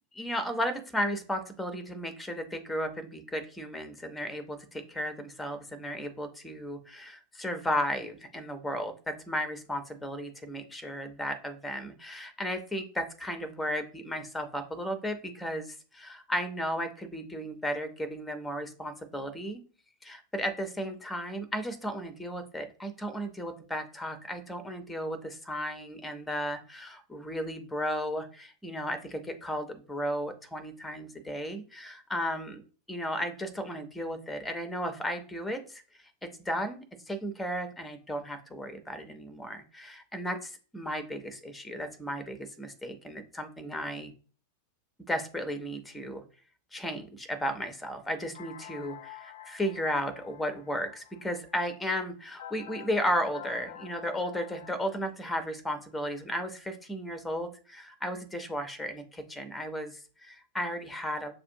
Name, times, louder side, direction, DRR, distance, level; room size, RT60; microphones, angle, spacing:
voice 1, 0.1-19.6 20.0-32.6 32.9-44.1 45.1-46.2 46.7-61.3, equal, 5° left, 10 dB, 0.6 m, -34 dB
sound 1, 48.3-55.0, left 10 dB, 55° left, 0.4 m, -48 dB
6.4 x 2.5 x 2.6 m, 0.38 s
figure-of-eight pair, 90°, 0 cm